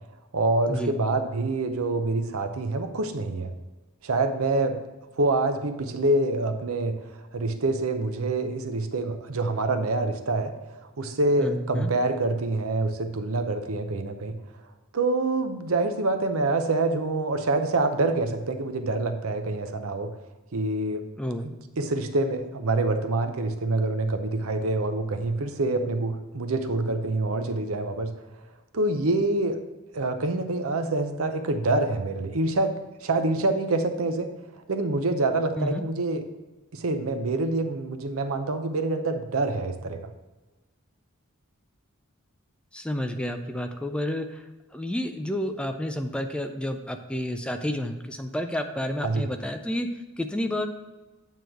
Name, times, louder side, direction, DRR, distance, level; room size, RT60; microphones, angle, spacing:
voice 1, 0.3-3.5 4.0-4.8 5.1-10.5 11.0-14.3 14.9-20.1 20.5-21.0 21.4-28.1 28.7-29.6 29.9-32.8 33.0-34.3 34.7-36.2 36.7-40.0 49.0-49.3, right 2 dB, 70° right, 7 dB, 0.7 m, -26 dB
voice 2, 11.4-11.9 21.2-21.5 35.6-35.8 42.7-44.4 44.7-49.9 50.2-50.7, left 1 dB, 5° left, 6 dB, 0.3 m, -30 dB
9.0 x 3.1 x 6.3 m, 1.2 s
head